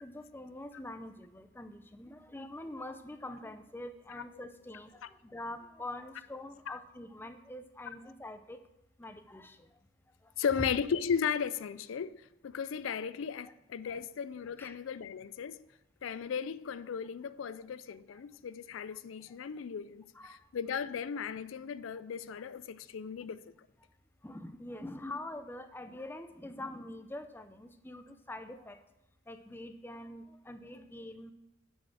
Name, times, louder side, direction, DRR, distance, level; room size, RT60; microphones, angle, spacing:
voice 1, 0.0-8.6 9.0-9.6 10.6-10.7 13.5-13.6 13.9-14.0 14.6-14.8 20.1-20.4 24.2-28.8 29.3-31.3, left 1 dB, 10° left, 0.5 m, -44 dB
voice 2, 10.4-15.7 16.0-23.5, left 7 dB, 85° left, 0.4 m, -36 dB
7.6 x 6.4 x 6.2 m
head